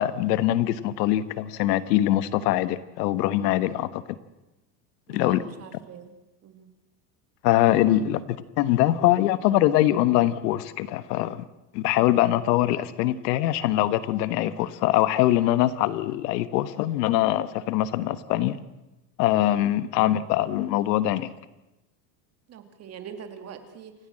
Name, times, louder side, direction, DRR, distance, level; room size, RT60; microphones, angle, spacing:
voice 1, 0.0-4.2 5.1-5.4 7.4-11.5 11.7-18.6 19.2-21.3, left 14 dB, 75° left, 15 dB, 1.4 m, -23 dB
voice 2, 5.1-6.1 6.4-6.7 11.9-12.4 19.9-20.2 22.5-23.9, right 7 dB, 30° right, 8 dB, 2.5 m, -43 dB
28.5 x 15.0 x 7.6 m, 0.99 s
supercardioid pair, 155°, 49 cm